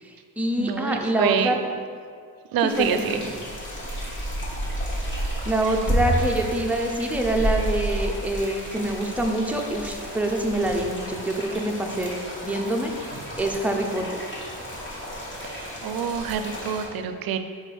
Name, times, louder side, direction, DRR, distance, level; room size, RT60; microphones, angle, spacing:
voice 1, 0.0-1.6 2.6-3.1 5.5-12.1 12.4-12.9 13.4-14.3, right 1 dB, 5° right, 1 dB, 0.5 m, -25 dB
voice 2, 0.6-1.6 2.5-3.2 15.4-17.4, right 8 dB, 65° right, 9 dB, 0.5 m, -26 dB
sound 1, 2.7-16.9, equal, 30° left, 1.2 m, -31 dB
4.9 x 4.5 x 4.4 m, 2.1 s
cardioid pair, 115°, 39 cm